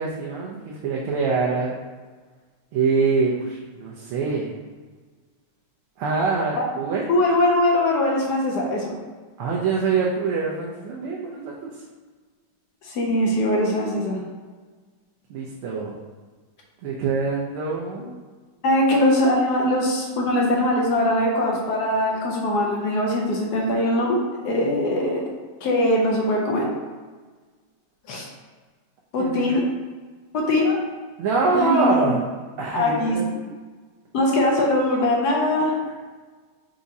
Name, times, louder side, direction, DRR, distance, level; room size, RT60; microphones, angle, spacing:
voice 1, 0.0-1.8 2.7-4.5 6.0-7.0 9.4-11.7 15.3-16.0 16.8-18.1 29.2-29.5 31.2-32.2 32.6-33.2, right 4 dB, 80° right, -3 dB, 1.5 m, -24 dB
voice 2, 7.1-8.9 12.8-14.2 18.6-25.2 25.6-26.7 28.1-28.2 29.1-29.6 30.3-30.8 31.5-32.2 32.7-33.2 34.1-35.8, left 1 dB, 65° left, -1 dB, 1.1 m, -21 dB
4.7 x 2.6 x 4.0 m, 1.4 s
omnidirectional pair, 2.4 m